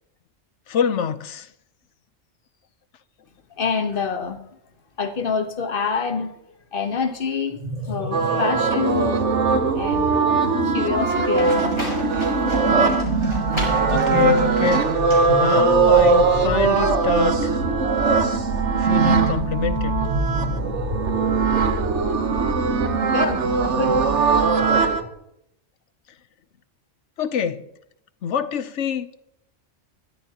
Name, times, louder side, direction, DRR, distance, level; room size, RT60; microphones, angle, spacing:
voice 1, 0.7-1.5 13.9-14.8 15.3-17.5 18.8-20.0 27.2-27.6 28.2-29.1, left 7 dB, 75° left, 1.1 m, -24 dB
voice 2, 3.6-4.4 5.0-6.3 6.7-9.3 9.7-12.3 23.0-23.5 23.7-24.2, left 5 dB, 50° left, 1.4 m, -27 dB
sound 1, 7.5-25.1, right 2 dB, 90° right, 2.3 m, -27 dB
sound 2, 8.1-25.0, right 5 dB, 70° right, 1.4 m, -21 dB
Livestock farm animals working animals, 11.0-16.0, left 1 dB, 20° left, 5.6 m, -34 dB
21.0 x 13.0 x 3.0 m
omnidirectional pair, 1.3 m